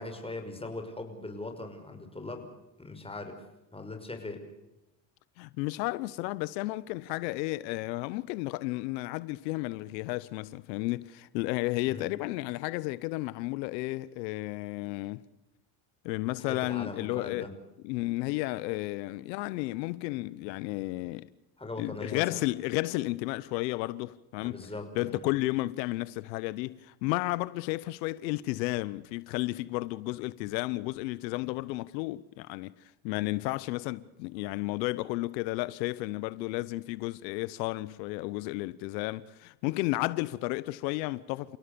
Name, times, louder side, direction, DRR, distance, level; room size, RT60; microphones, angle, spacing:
voice 1, 0.0-2.5 2.8-3.4 3.7-4.4 11.9-12.1 16.4-17.5 21.6-22.5 24.4-25.3, left 2 dB, 10° left, 5.7 m, -40 dB
voice 2, 5.4-15.2 16.0-17.5 17.8-21.3 21.8-24.6 25.0-32.7 33.0-41.6, left 20 dB, 90° left, 0.9 m, -32 dB
30.0 x 17.0 x 6.9 m
supercardioid pair, 90°, 49 cm